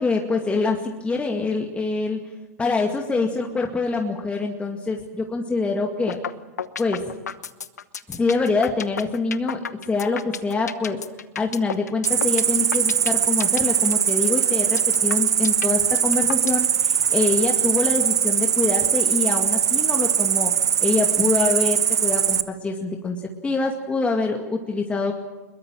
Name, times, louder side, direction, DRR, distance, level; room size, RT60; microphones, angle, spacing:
voice 1, 0.0-2.2 2.6-6.2 6.8-7.0 8.1-11.0 11.4-20.5 20.8-23.2 23.4-25.1, left 3 dB, 15° left, 2 dB, 2.2 m, -25 dB
sound 1, 6.1-6.3 6.6-16.7, left 7 dB, 80° left, 1.0 m, -31 dB
Cricket, 12.0-22.4, right 8 dB, 80° right, 0.9 m, -21 dB
23.0 x 22.0 x 7.5 m, 1.1 s
hypercardioid pair, 100°, 9 cm